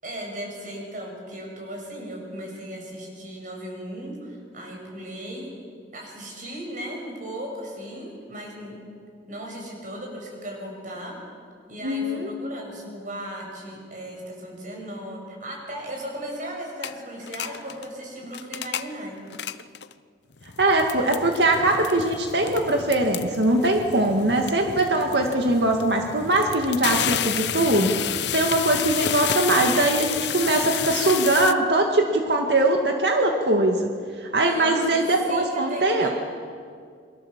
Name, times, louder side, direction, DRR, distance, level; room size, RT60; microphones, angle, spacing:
voice 1, 0.0-5.5 5.9-8.8 9.3-11.2 11.7-19.2 34.4-36.1, equal, 45° right, 0 dB, 7.4 m, -36 dB
voice 2, 11.8-12.3 20.6-28.0 28.3-33.9 34.2-36.1, right 2 dB, 70° right, 2 dB, 2.1 m, -21 dB
sound 1, 16.8-16.9 17.2-17.9 18.2-18.9 19.3-19.9 20.4-31.5, left 9 dB, 75° left, 0.7 m, -30 dB
29.0 x 23.0 x 7.5 m, 2.1 s
head